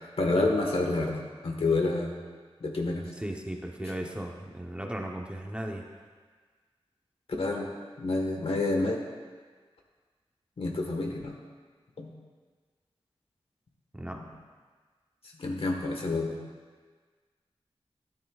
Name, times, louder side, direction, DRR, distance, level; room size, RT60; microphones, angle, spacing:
voice 1, 0.2-2.1 2.6-3.0 7.4-7.7 8.0-9.0 10.6-11.3 12.0-12.1 14.1-14.3 15.4-16.4, left 2 dB, 65° left, 1 dB, 1.5 m, -28 dB
voice 2, 3.2-5.8 13.9-14.2, right 1 dB, 10° right, 1 dB, 0.9 m, -36 dB
13.0 x 10.5 x 2.4 m, 1.5 s
wide cardioid pair, 90°, 10 cm